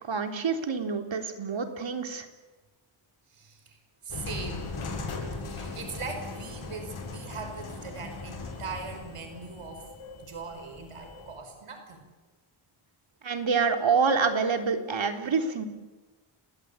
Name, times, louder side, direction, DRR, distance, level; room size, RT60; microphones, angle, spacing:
voice 1, 0.1-2.3 13.2-15.7, right 5 dB, 65° right, 5 dB, 3.6 m, -27 dB
voice 2, 3.3-4.8 5.5-9.9 10.2-12.0, right 4 dB, 85° right, 6 dB, 5.2 m, -40 dB
sound 1, 4.1-11.4, left 3 dB, 75° left, 7.9 m, -39 dB
29.5 x 20.5 x 8.6 m, 1.2 s
wide cardioid pair, 100°, 50 cm